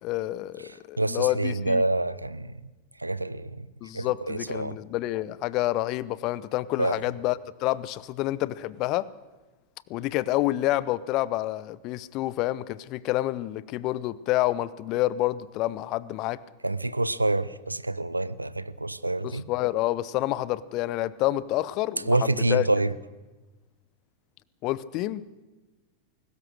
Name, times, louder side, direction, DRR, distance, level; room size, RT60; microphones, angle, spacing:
voice 1, 0.0-1.8 3.8-9.1 9.9-16.4 19.2-22.6 24.6-25.3, left 16 dB, 40° left, 19 dB, 0.8 m, -28 dB
voice 2, 1.0-2.6 3.0-3.7 3.9-4.8 6.8-7.0 16.6-19.4 22.1-22.9, right 2 dB, 85° right, 17 dB, 0.7 m, -27 dB
21.5 x 19.0 x 6.6 m, 1.2 s
figure-of-eight pair, 90°, 0 cm